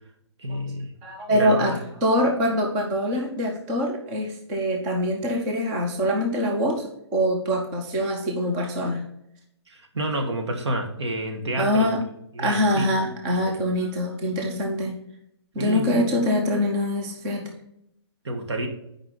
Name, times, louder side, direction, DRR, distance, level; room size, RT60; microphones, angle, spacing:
voice 1, 0.4-0.9 1.3-1.7 9.7-11.9 12.3-12.9 13.4-13.5 15.6-16.2 18.2-18.7, right 1 dB, 75° right, 3 dB, 1.7 m, -29 dB
voice 2, 1.0-9.0 11.6-12.0 12.4-14.9 15.5-17.5, equal, 5° right, 2 dB, 0.3 m, -24 dB
6.6 x 4.9 x 5.3 m, 0.78 s
hypercardioid pair, 175°, 15 cm